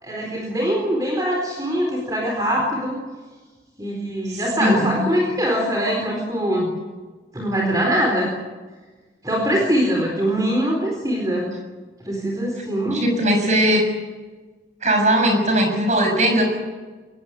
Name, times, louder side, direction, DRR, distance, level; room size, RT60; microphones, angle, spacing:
voice 1, 0.0-3.0 3.8-6.7 7.3-8.3 9.2-11.5 12.0-13.0, equal, 20° right, -1 dB, 4.3 m, -22 dB
voice 2, 4.3-4.9 12.9-13.8 14.8-16.5, right 1 dB, 40° right, 4 dB, 6.8 m, -19 dB
23.5 x 20.5 x 9.1 m, 1.3 s
head